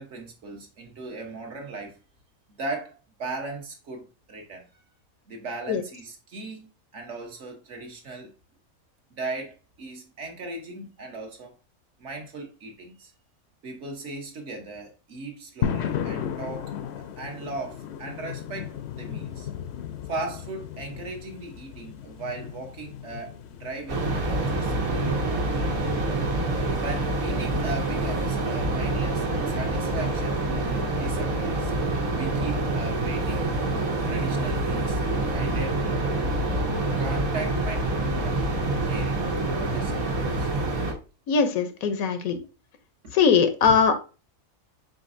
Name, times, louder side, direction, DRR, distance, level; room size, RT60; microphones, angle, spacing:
voice 1, 0.0-2.0 2.5-4.8 5.3-8.3 9.1-11.5 12.0-13.1 13.6-16.7 17.2-19.5 20.1-25.9 26.7-31.7 32.1-33.8 34.1-35.0 35.3-36.1 37.0-38.4 38.8-40.5 43.6-43.7, right 3 dB, 60° right, 1.3 m, -38 dB
sound 1, 15.6-28.5, left 8 dB, 65° left, 0.7 m, -36 dB
sound 2, 23.9-40.9, right 2 dB, 85° right, 1.6 m, -26 dB
voice 2, 41.3-42.4 43.1-44.0, left 6 dB, 85° left, 1.2 m, -21 dB
5.1 x 3.9 x 2.6 m
omnidirectional pair, 1.4 m